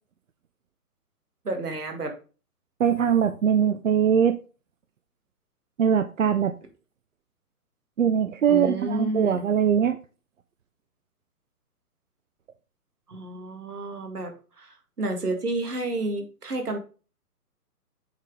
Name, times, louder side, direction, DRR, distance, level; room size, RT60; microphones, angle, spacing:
voice 1, 1.5-2.1 8.5-9.4 13.1-16.8, right 2 dB, 75° right, 5 dB, 1.9 m, -30 dB
voice 2, 2.8-4.4 5.8-6.5 8.0-10.0, right 8 dB, 55° right, 10 dB, 0.6 m, -22 dB
7.0 x 4.1 x 3.7 m, 0.35 s
figure-of-eight pair, 130°, 47 cm